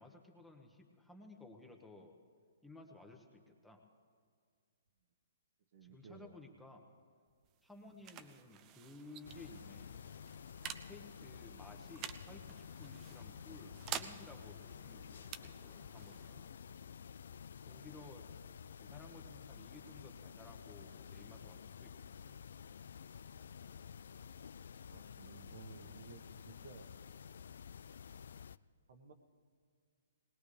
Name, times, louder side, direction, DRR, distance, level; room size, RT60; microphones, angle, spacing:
voice 1, 0.0-2.1 2.6-3.8 5.8-6.8 7.6-10.0 10.9-16.4 17.6-18.3 18.8-22.4, left 2 dB, 5° left, 2 dB, 1.2 m, -56 dB
voice 2, 5.7-6.3 7.9-8.0 24.1-24.4 24.8-26.9 28.9-29.1, right 4 dB, 60° right, 5 dB, 1.4 m, -56 dB
sound 1, 7.3-18.6, right 10 dB, 25° right, 0.6 m, -51 dB
sound 2, 9.2-28.6, left 7 dB, 70° left, 0.3 m, -51 dB
20.0 x 18.5 x 3.4 m, 2.1 s
hypercardioid pair, 140°, 0 cm